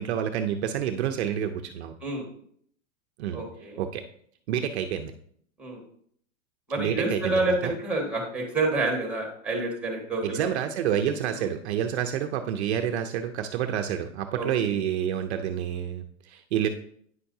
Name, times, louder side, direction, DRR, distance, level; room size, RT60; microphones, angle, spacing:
voice 1, 0.0-1.9 3.2-3.4 3.8-4.0 4.5-5.1 6.8-7.8 10.2-16.7, right 9 dB, 50° right, 6 dB, 0.6 m, -28 dB
voice 2, 3.3-3.8 5.6-5.8 6.7-10.5 11.3-11.4 14.3-14.8, right 2 dB, 5° right, 0 dB, 1.7 m, -28 dB
9.5 x 5.6 x 2.7 m, 0.63 s
hypercardioid pair, 150°, 42 cm